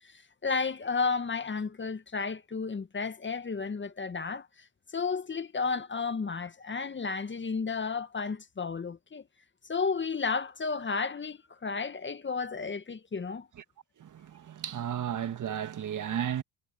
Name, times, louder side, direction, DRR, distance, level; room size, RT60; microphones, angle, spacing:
voice 1, 0.0-4.7 4.9-9.2 9.6-13.5, left 4 dB, 25° left, 1.8 m, -32 dB
voice 2, 14.0-16.4, right 9 dB, 40° right, 2.1 m, -33 dB
hypercardioid pair, 65°, 47 cm